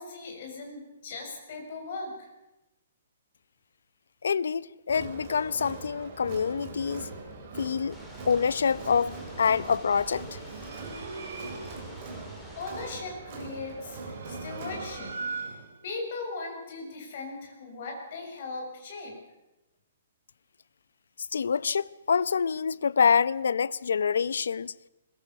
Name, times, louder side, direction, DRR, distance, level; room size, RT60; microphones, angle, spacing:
voice 1, 0.0-2.3 12.5-15.1 15.4-15.6 15.8-19.2, left 3 dB, 40° left, 6.9 m, -38 dB
voice 2, 4.2-7.1 7.6-8.0 8.3-10.4 21.3-24.7, left 6 dB, 90° left, 0.7 m, -26 dB
Crowd, 4.9-15.1, right 3 dB, 30° right, 4.5 m, -42 dB
sound 1, 7.9-12.9, left 1 dB, 5° left, 2.8 m, -49 dB
sound 2, 10.3-11.9 13.8-15.8, right 4 dB, 65° right, 5.9 m, -40 dB
21.5 x 21.0 x 7.1 m
hypercardioid pair, 175°, 0 cm